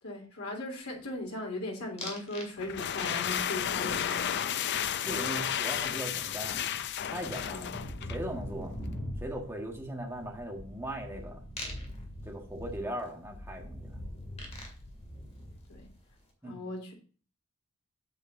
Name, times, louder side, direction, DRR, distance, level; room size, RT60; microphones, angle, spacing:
voice 1, 0.0-4.6 7.3-7.7 15.7-15.9 16.4-16.9, left 1 dB, 85° left, 0 dB, 3.3 m, -38 dB
sound 1, 2.0-2.5 2.8-3.3 5.7-5.8 6.0-16.1, left 1 dB, 30° left, 2.4 m, -42 dB
sound 2, 2.6-8.3, left 9 dB, 50° left, 0.4 m, -32 dB
voice 2, 5.0-6.6 7.1-7.8 8.0-8.7 9.2-11.4 12.2-13.9 16.4-16.6, right 1 dB, 10° right, 0 dB, 1.5 m, -39 dB
8.4 x 7.9 x 2.7 m, 0.39 s
head